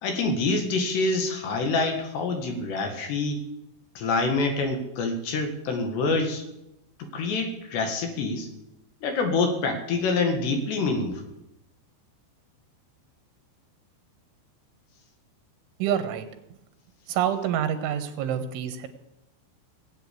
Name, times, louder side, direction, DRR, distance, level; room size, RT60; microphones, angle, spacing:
voice 1, 0.0-3.4 4.0-6.5 7.0-8.5 9.0-11.2, left 3 dB, 70° left, 5 dB, 3.9 m, -26 dB
voice 2, 15.8-16.3 17.1-18.9, right 9 dB, 90° right, 9 dB, 3.8 m, -27 dB
18.5 x 8.9 x 8.5 m, 0.87 s
omnidirectional pair, 5.3 m